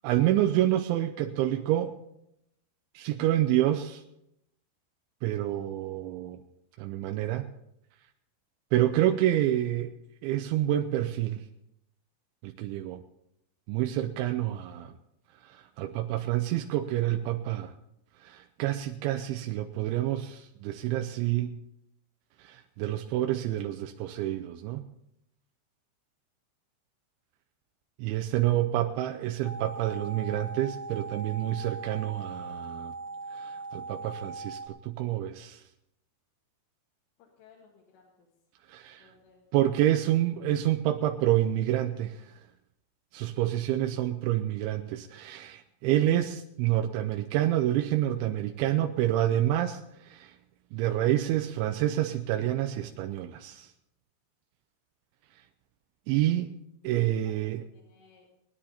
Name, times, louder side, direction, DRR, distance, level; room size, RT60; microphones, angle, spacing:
voice 1, 0.0-2.0 2.9-4.0 5.2-6.4 6.8-7.5 8.7-10.0 10.2-11.5 12.4-13.0 13.7-14.9 15.4-17.7 18.2-21.5 22.4-24.8 28.0-32.9 33.3-35.6 38.7-39.1 39.5-42.4 43.1-50.4 50.7-53.7 56.1-56.5 56.8-57.6, right 13 dB, 80° right, 5 dB, 2.8 m, -28 dB
sound 1, 29.4-34.7, right 3 dB, 50° left, 1.3 m, -40 dB
voice 2, 37.2-38.3 39.0-39.4 57.1-57.4 57.7-58.3, left 6 dB, 80° left, -4 dB, 4.7 m, -59 dB
21.0 x 10.0 x 4.2 m, 0.83 s
omnidirectional pair, 5.7 m